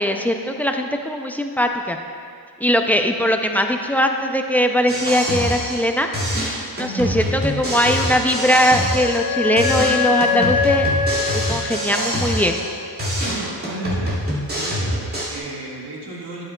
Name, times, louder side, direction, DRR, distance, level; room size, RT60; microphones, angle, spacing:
voice 1, 0.0-2.0 2.6-6.1 6.8-10.9 11.5-12.6, equal, 5° left, 4 dB, 0.3 m, -20 dB
sound 1, 4.9-5.9 6.1-9.3 9.6-12.7 13.0-15.4, equal, 35° right, 2.3 m, -25 dB
Wind instrument woodwind instrument, 8.3-12.9, left 5 dB, 65° left, 0.5 m, -24 dB
voice 2, 13.2-14.2 14.5-16.4, right 2 dB, 85° right, -4 dB, 1.8 m, -34 dB
12.0 x 9.0 x 2.2 m, 2.2 s
wide cardioid pair, 160°, 38 cm